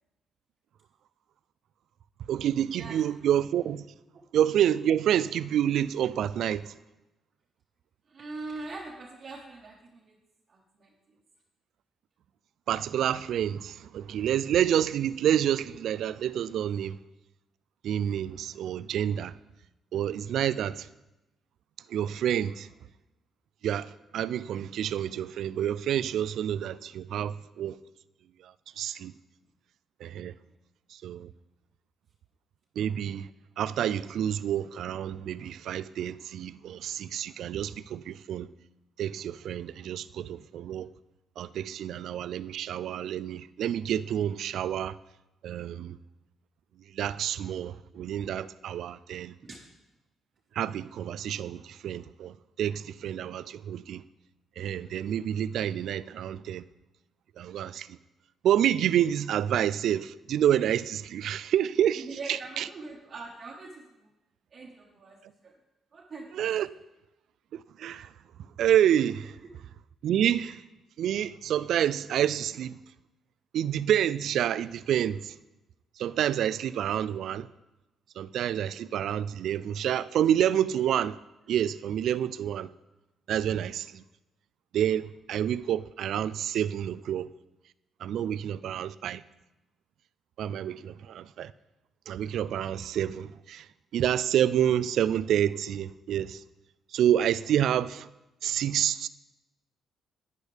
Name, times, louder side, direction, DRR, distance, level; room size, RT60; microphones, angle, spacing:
voice 1, 2.3-3.8 4.3-6.7 12.7-16.9 17.8-19.3 19.9-20.9 21.9-22.7 23.6-27.8 28.8-29.1 30.0-30.3 31.0-31.3 32.8-33.3 33.6-38.5 39.0-40.9 41.4-45.0 45.4-46.0 46.9-49.4 50.6-54.0 54.6-56.6 57.4-57.9 58.4-62.0 62.3-62.6 66.4-66.7 67.5-68.1 68.6-69.3 70.0-70.6 71.0-72.8 73.5-75.3 76.0-77.5 78.2-81.2 81.5-82.7 83.3-84.0 84.7-87.3 88.0-89.2 90.4-91.5 92.1-93.6 93.9-96.4 96.9-98.1 98.4-99.1, right 10 dB, 75° right, 0.3 m, -28 dB
voice 2, 8.1-10.2 10.5-10.9 20.4-20.7 49.4-49.6 61.9-64.1 64.5-65.5 65.9-66.3, right 3 dB, 45° right, 1.3 m, -42 dB
10.5 x 9.8 x 3.4 m
cardioid pair, 90°, 0 cm